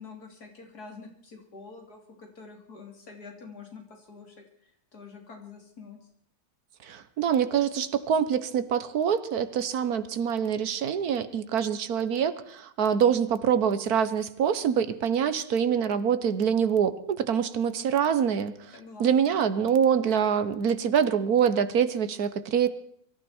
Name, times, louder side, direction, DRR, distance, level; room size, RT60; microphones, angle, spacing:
voice 1, 0.0-6.0 18.7-19.3, left 4 dB, 85° left, 3 dB, 3.7 m, -46 dB
voice 2, 6.8-18.7 19.0-22.7, right 8 dB, 75° right, 13 dB, 1.5 m, -25 dB
23.0 x 14.5 x 4.4 m, 0.64 s
omnidirectional pair, 1.6 m